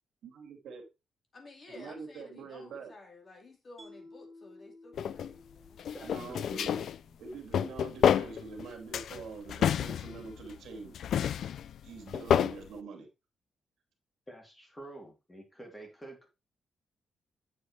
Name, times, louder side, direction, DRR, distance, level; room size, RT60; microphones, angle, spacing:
voice 1, 0.2-0.9 1.7-2.9 6.0-6.8 7.2-11.0 11.8-13.1, right 4 dB, 80° right, 2.5 m, -44 dB
voice 2, 1.3-5.9, left 3 dB, 40° left, 2.6 m, -53 dB
Mallet percussion, 3.8-7.0, left 2 dB, 35° right, 1.9 m, -55 dB
sound 1, 5.0-5.3 5.8-7.0 7.3-8.6 8.9-10.6 10.9-12.6, left 9 dB, 70° left, 0.4 m, -29 dB
voice 3, 5.9-7.2 14.3-16.3, right 1 dB, 10° left, 3.1 m, -48 dB
8.5 x 7.6 x 3.2 m
cardioid pair, 135°, 0 cm